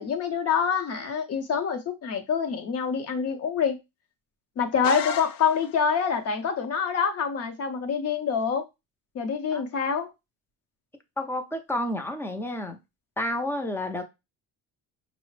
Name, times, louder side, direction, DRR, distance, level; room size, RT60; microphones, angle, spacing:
voice 1, 0.0-3.8 4.6-8.6 9.1-10.1, left 6 dB, 40° left, 0.7 m, -26 dB
sound 1, 4.8-5.9, left 8 dB, 70° left, 0.5 m, -34 dB
voice 2, 11.2-12.8 13.2-14.0, left 1 dB, 5° left, 0.4 m, -30 dB
5.6 x 2.1 x 3.1 m
cardioid pair, 140°, 38 cm